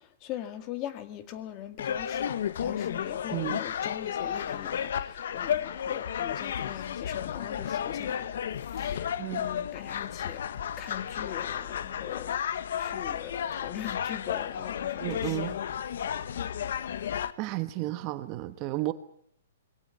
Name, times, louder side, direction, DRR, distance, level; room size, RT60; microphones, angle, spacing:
voice 1, 0.2-10.4 10.8-15.5, left 11 dB, 25° left, 10 dB, 2.2 m, -41 dB
sound 1, 1.8-17.3, left 9 dB, 65° left, 1.3 m, -33 dB
voice 2, 3.3-3.6 9.2-9.5 15.0-15.5 17.4-18.9, right 17 dB, 30° right, 12 dB, 1.2 m, -32 dB
22.0 x 17.0 x 9.8 m, 0.66 s
hypercardioid pair, 160°, 0 cm